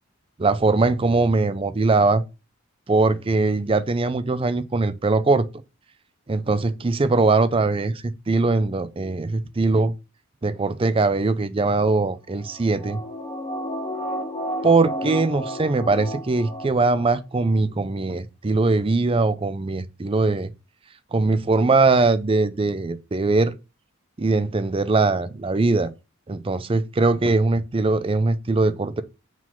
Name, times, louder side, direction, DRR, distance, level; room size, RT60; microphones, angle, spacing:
voice 1, 0.4-2.2 2.9-5.5 6.3-9.9 10.4-13.0 14.6-20.5 21.1-23.5 24.2-25.9 26.3-29.0, right 3 dB, 25° right, 0.4 m, -21 dB
sound 1, 12.4-17.1 17.5-17.6, equal, 30° left, 1.5 m, -32 dB
4.8 x 3.8 x 5.6 m
head